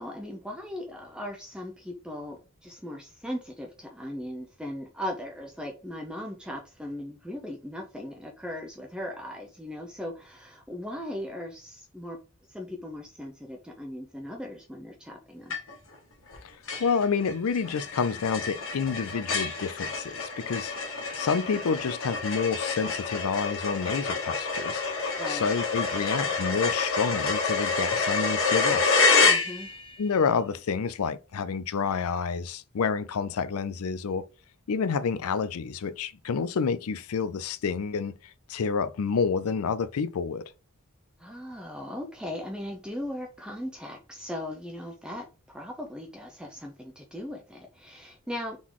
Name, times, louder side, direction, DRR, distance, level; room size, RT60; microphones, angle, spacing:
voice 1, 0.0-12.2 12.5-15.6 25.2-25.5 29.2-29.7 41.2-48.6, left 1 dB, 5° right, 0.6 m, -38 dB
sound 1, 15.5-15.9 16.3-16.4 16.7-29.9, left 4 dB, 70° left, 1.3 m, -28 dB
voice 2, 16.8-20.7 21.1-24.8 25.3-29.0 30.0-34.2 34.7-38.2 38.5-40.4, left 5 dB, 85° left, 0.5 m, -29 dB
3.8 x 3.7 x 3.0 m
head